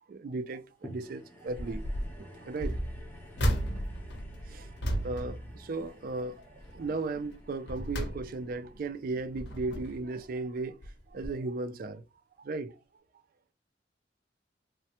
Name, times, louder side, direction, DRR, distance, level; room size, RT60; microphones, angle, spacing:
voice 1, 0.1-1.9 2.2-2.8 4.5-4.7 5.0-6.5 6.7-10.8 11.1-12.0 12.4-12.7, right 3 dB, 50° right, 0.3 m, -36 dB
sound 1, 0.8-11.3 11.9-12.0, equal, 10° left, 0.6 m, -54 dB
sound 2, 1.6-2.1 2.5-6.2 6.6-6.9 7.4-8.7 9.2-10.1 10.8-11.0 11.2-11.3, equal, 70° left, 0.7 m, -34 dB
3.2 x 2.1 x 2.8 m
head